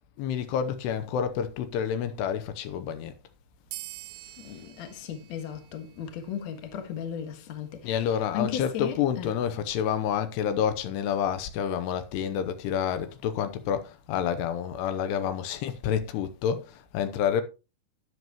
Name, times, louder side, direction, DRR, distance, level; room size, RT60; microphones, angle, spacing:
voice 1, 0.2-3.1 7.8-17.4, left 8 dB, 85° left, 2.9 m, -29 dB
sound 1, 3.7-6.7, right 18 dB, 80° right, 2.4 m, -45 dB
voice 2, 4.4-7.9 8.3-9.3, left 8 dB, 55° left, 2.2 m, -36 dB
13.0 x 9.4 x 3.0 m
omnidirectional pair, 4.9 m